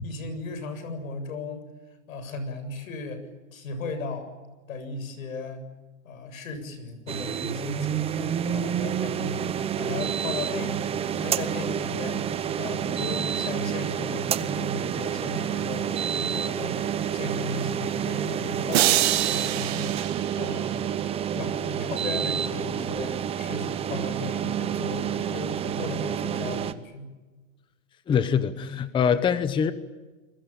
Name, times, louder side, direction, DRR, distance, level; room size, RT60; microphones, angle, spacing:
voice 1, 0.0-1.6 2.1-3.3 3.5-4.3 4.7-5.7 6.0-20.8 21.3-27.1, left 3 dB, 85° left, 10 dB, 7.6 m, -36 dB
sound 1, 7.1-26.7, right 9 dB, 15° right, 0.9 m, -29 dB
sound 2, 18.7-21.0, right 17 dB, 50° right, 1.5 m, -26 dB
voice 2, 28.1-29.7, left 7 dB, 10° left, 13 dB, 0.9 m, -23 dB
29.0 x 21.5 x 8.7 m, 1.3 s
supercardioid pair, 155°, 40 cm